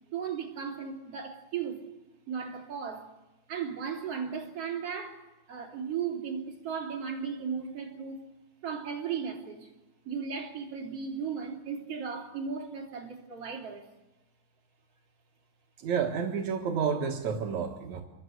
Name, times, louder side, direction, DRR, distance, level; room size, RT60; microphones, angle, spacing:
voice 1, 0.1-1.8 2.3-3.1 3.5-5.2 5.5-8.2 8.6-9.7 10.1-13.9, right 6 dB, 35° right, 3.8 m, -36 dB
voice 2, 15.8-18.0, right 6 dB, 60° right, 2.0 m, -30 dB
28.0 x 24.0 x 8.0 m
omnidirectional pair, 5.5 m